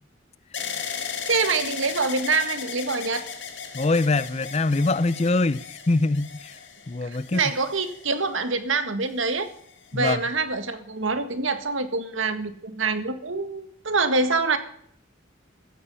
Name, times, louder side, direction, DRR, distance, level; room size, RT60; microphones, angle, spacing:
sound 1, 0.5-8.5 9.3-9.9, left 6 dB, 65° left, 2.3 m, -36 dB
voice 1, 1.3-3.2 7.0-9.5 9.9-14.6, right 4 dB, 75° right, 1.8 m, -25 dB
voice 2, 3.7-6.5 6.9-7.5 9.9-10.2, left 2 dB, 30° left, 0.5 m, -23 dB
15.0 x 14.0 x 5.6 m
head